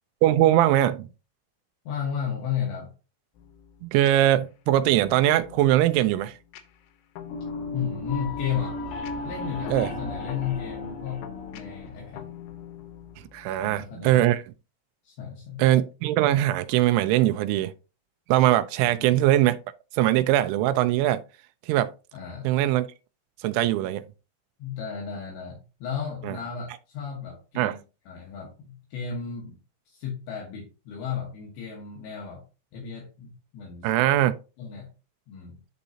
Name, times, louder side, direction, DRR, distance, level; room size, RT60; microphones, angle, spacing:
voice 1, 0.2-1.1 3.8-6.4 9.7-9.9 13.3-14.4 15.6-17.7 18.3-19.6 19.9-21.2 21.7-21.9 22.4-22.9 23.4-24.0 26.3-26.4 27.6-27.7 33.8-34.4, right 13 dB, 85° right, 2.9 m, -21 dB
voice 2, 1.9-2.9 7.7-8.8 9.2-12.3 13.5-14.3 15.0-15.6 18.8-19.2 22.1-22.5 24.6-29.6 29.9-32.5 32.7-33.9 34.6-34.9 35.3-35.6, left 7 dB, 70° left, 3.5 m, -34 dB
sound 1, 3.4-14.0, left 10 dB, 90° left, 3.3 m, -44 dB
sound 2, 7.2-12.3, left 2 dB, 50° left, 2.2 m, -35 dB
11.5 x 3.9 x 2.8 m
omnidirectional pair, 5.3 m